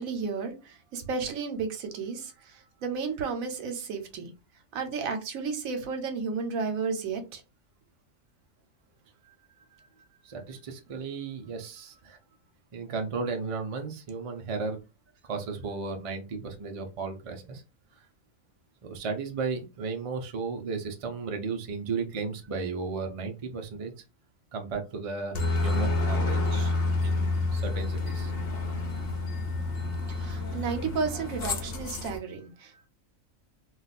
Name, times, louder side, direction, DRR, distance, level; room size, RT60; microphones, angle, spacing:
voice 1, 0.0-4.3 4.7-7.4 30.1-32.9, right 5 dB, 80° right, 1.1 m, -33 dB
voice 2, 10.2-12.2 12.7-14.8 15.3-17.6 18.8-23.9 24.5-26.7 27.0-28.3, right 4 dB, 50° right, 0.4 m, -34 dB
Aircraft, 25.3-32.2, left 3 dB, 50° left, 0.8 m, -29 dB
2.4 x 2.3 x 4.0 m
omnidirectional pair, 1.4 m